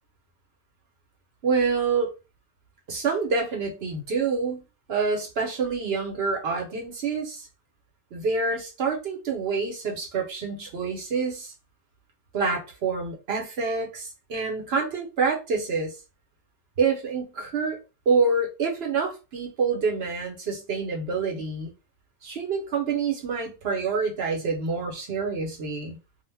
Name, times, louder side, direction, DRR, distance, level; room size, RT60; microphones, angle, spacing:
voice 1, 1.4-2.1 2.9-4.6 4.9-7.5 8.1-11.5 12.3-16.0 16.8-17.8 18.1-21.7 22.2-26.0, right 4 dB, 60° right, 0.9 m, -27 dB
2.4 x 2.1 x 3.3 m
omnidirectional pair, 1.3 m